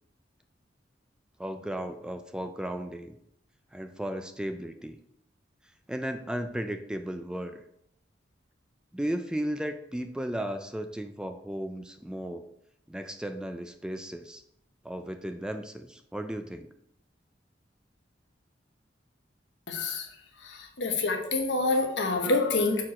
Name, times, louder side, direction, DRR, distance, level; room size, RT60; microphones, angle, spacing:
voice 1, 1.4-3.2 3.7-5.0 5.9-7.6 8.9-12.5 12.9-14.4 14.8-16.7, right 1 dB, 5° right, 7 dB, 0.3 m, -35 dB
voice 2, 19.7-20.1 20.4-22.8, left 3 dB, 75° left, 3 dB, 1.0 m, -27 dB
6.3 x 4.5 x 4.2 m, 0.74 s
head